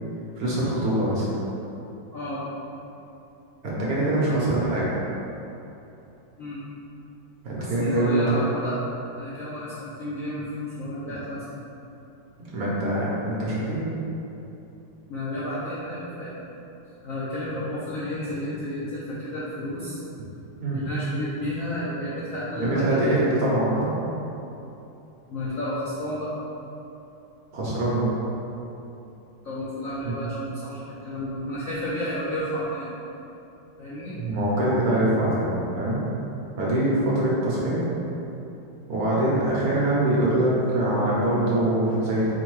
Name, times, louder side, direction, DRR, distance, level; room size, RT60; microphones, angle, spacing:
voice 1, 0.4-1.3 3.6-4.9 7.4-8.4 12.5-13.8 20.6-20.8 22.5-23.9 27.5-28.1 30.0-30.1 34.2-36.0 36.6-37.8 38.9-42.3, right 1 dB, 60° right, -7 dB, 1.1 m, -23 dB
voice 2, 2.1-2.4 4.2-4.4 6.4-6.6 7.6-8.8 9.1-11.6 15.1-16.3 17.0-20.0 20.7-23.1 25.3-26.3 29.4-33.0 33.8-34.2, left 1 dB, 65° left, -9 dB, 0.8 m, -32 dB
4.5 x 2.2 x 4.6 m, 2.9 s
omnidirectional pair, 2.1 m